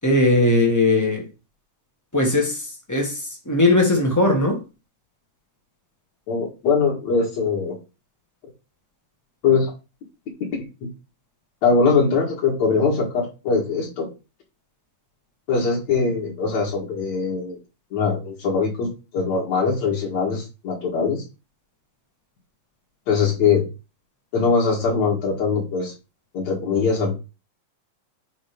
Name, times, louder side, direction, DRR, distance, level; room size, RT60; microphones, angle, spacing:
voice 1, 0.0-1.2 2.1-4.6, left 2 dB, 15° left, 0.6 m, -19 dB
voice 2, 6.3-7.7 9.4-9.7 10.8-10.9 11.6-14.1 15.5-17.6 17.9-21.2 23.1-23.6 24.3-25.9 26.3-27.1, left 5 dB, 60° left, 3.0 m, -21 dB
9.1 x 3.1 x 5.2 m
omnidirectional pair, 3.5 m